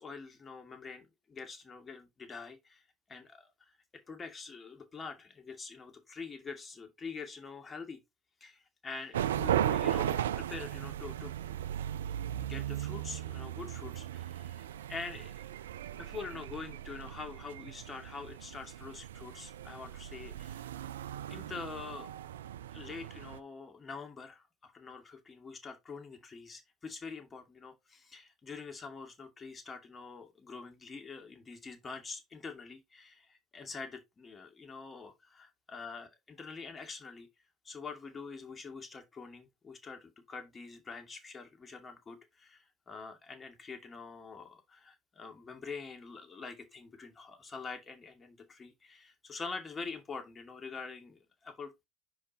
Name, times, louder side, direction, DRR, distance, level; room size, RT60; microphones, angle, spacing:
voice 1, 0.0-2.8 3.1-3.8 4.1-8.0 8.4-11.7 12.4-15.3 15.9-20.9 21.3-22.1 22.7-37.3 37.6-51.9, left 4 dB, 30° left, 2.4 m, -45 dB
sound 1, 9.1-23.4, right 11 dB, 80° right, 0.4 m, -37 dB
5.9 x 5.1 x 4.4 m
hypercardioid pair, 70°, 0 cm